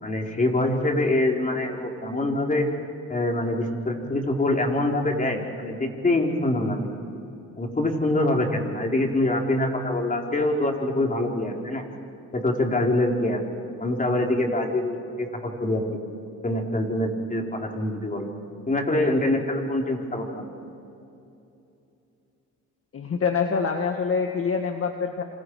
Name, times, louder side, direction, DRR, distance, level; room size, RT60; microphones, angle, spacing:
voice 1, 0.0-2.7 3.1-6.8 7.6-11.8 12.3-13.4 13.8-15.9 16.4-18.3 18.7-20.5, left 1 dB, 25° left, 1 dB, 4.2 m, -25 dB
voice 2, 22.9-25.2, left 5 dB, 50° left, 4 dB, 1.8 m, -25 dB
28.0 x 27.0 x 4.9 m, 2.8 s
cardioid pair, 90°, 30 cm